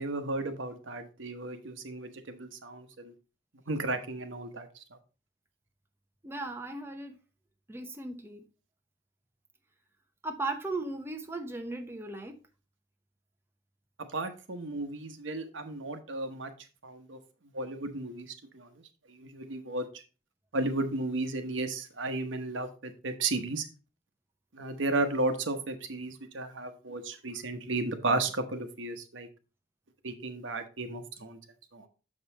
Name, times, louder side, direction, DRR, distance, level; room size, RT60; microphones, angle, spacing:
voice 1, 0.0-3.1 3.7-4.8 14.1-16.5 16.8-17.2 17.5-18.7 19.1-19.9 20.5-23.7 24.5-29.3 30.0-31.4 31.7-31.9, right 2 dB, 75° right, 1.0 m, -34 dB
voice 2, 6.2-7.2 7.7-8.4 10.2-12.4, right 2 dB, 10° right, 0.7 m, -37 dB
6.7 x 5.4 x 4.0 m
head